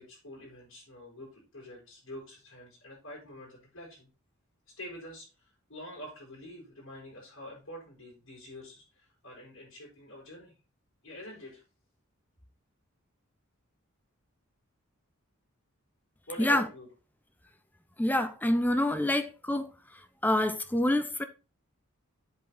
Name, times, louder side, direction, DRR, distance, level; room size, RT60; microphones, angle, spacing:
voice 1, 0.0-4.1 4.8-10.5 11.0-11.6 16.3-16.9, equal, 65° left, 5.2 m, -46 dB
voice 2, 18.0-19.7 20.2-21.2, left 1 dB, 10° left, 0.6 m, -26 dB
8.0 x 5.2 x 4.2 m
head